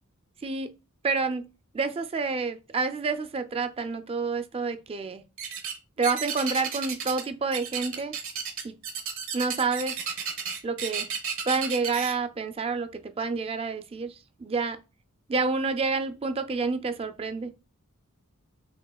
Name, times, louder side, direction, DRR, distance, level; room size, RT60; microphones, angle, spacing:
voice 1, 1.0-1.4 1.7-5.2 6.0-8.2 8.6-8.8 9.3-10.0 10.6-11.1 11.5-14.1 14.4-14.8 15.3-17.5, right 4 dB, 25° right, 0.3 m, -28 dB
sound 1, 5.4-5.8 6.0-7.3 7.5-12.1, right 7 dB, 65° right, 1.0 m, -32 dB
5.8 x 2.9 x 2.3 m
head